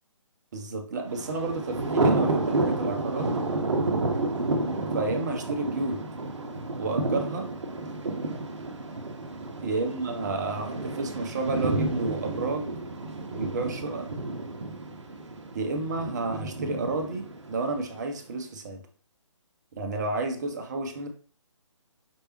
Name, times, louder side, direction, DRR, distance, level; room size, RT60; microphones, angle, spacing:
voice 1, 0.5-3.3 4.9-6.0 6.8-7.5 9.6-12.7 13.3-14.1 15.5-18.8 19.7-21.1, right 3 dB, 35° right, 4 dB, 0.8 m, -31 dB
Thunder, 1.1-18.1, right 2 dB, 60° right, 0.9 m, -30 dB
5.3 x 3.3 x 3.1 m, 0.42 s
figure-of-eight pair, 145°, 17 cm